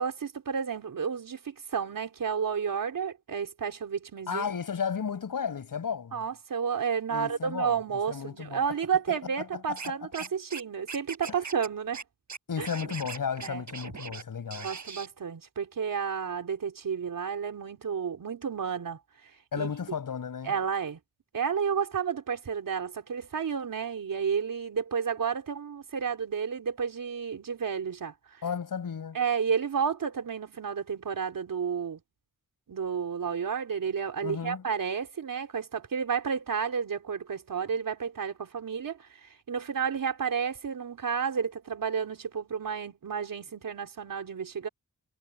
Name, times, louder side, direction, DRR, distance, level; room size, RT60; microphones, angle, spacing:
voice 1, 0.0-4.5 6.1-12.0 12.6-12.7 13.4-13.7 14.6-19.0 19.5-19.7 20.4-21.0 21.3-28.1 29.1-32.0 32.7-44.7, right 6 dB, 90° right, 3.9 m, -31 dB
voice 2, 4.3-6.2 7.1-8.7 9.4-9.9 11.3-11.4 12.5-14.7 19.5-20.6 28.4-29.2 34.2-34.6, left 6 dB, 85° left, 6.8 m, -34 dB
Scratching (performance technique), 9.8-10.6 10.9-11.7 11.9-12.0 12.3-14.2 14.5-15.1, right 5 dB, 60° right, 7.4 m, -40 dB
wide cardioid pair, 100°, 32 cm